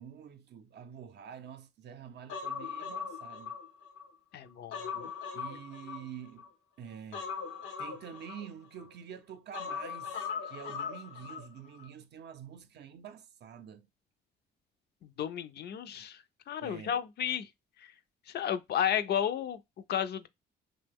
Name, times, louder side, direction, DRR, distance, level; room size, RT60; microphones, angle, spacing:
voice 1, 0.0-3.5 5.3-6.5 6.8-7.3 7.8-10.2 10.4-13.9 16.6-17.0, right 8 dB, 60° right, 0.5 m, -47 dB
Human voice, 2.3-4.1 4.5-6.5 7.1-8.9 9.5-11.5 11.8-11.9, left 6 dB, 90° left, 0.7 m, -39 dB
voice 2, 4.3-5.1 15.0-17.5 17.8-17.9 18.3-19.6 19.9-20.3, left 9 dB, 55° left, 0.4 m, -33 dB
2.8 x 2.1 x 3.4 m
cardioid pair, 90°, 20 cm